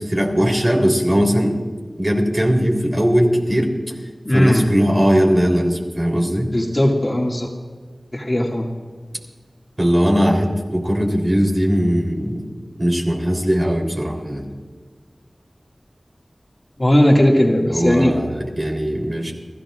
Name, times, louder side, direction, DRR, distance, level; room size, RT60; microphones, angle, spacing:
voice 1, 0.0-1.6 2.0-3.7 4.3-6.5 9.8-12.4 12.8-14.5 17.6-19.3, equal, 35° right, 0 dB, 3.4 m, -19 dB
voice 2, 4.2-4.7 6.5-7.5 8.1-8.7 16.8-18.1, left 1 dB, 30° left, -1 dB, 2.1 m, -17 dB
30.0 x 14.5 x 2.5 m, 1.5 s
wide cardioid pair, 50°, 0 cm